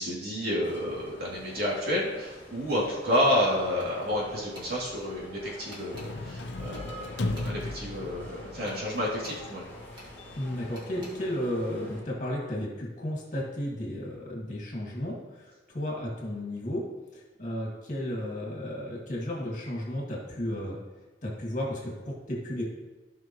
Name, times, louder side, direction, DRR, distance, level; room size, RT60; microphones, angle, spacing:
voice 1, 0.0-7.0 7.4-9.6, left 1 dB, 55° right, -5 dB, 2.8 m, -30 dB
sound 1, 0.6-12.0, equal, 10° left, 3.2 m, -48 dB
sound 2, 3.8-4.1 4.5-4.7 5.7-6.1 6.7-7.8 8.7-9.4 10.0-10.1 10.7-11.1, equal, 25° right, 2.4 m, -49 dB
sound 3, 5.9-11.3, left 2 dB, 70° left, 0.6 m, -37 dB
voice 2, 10.4-16.9 17.1-20.8 21.2-22.6, left 1 dB, 45° left, -3 dB, 2.3 m, -33 dB
15.5 x 5.7 x 3.1 m, 1.2 s
head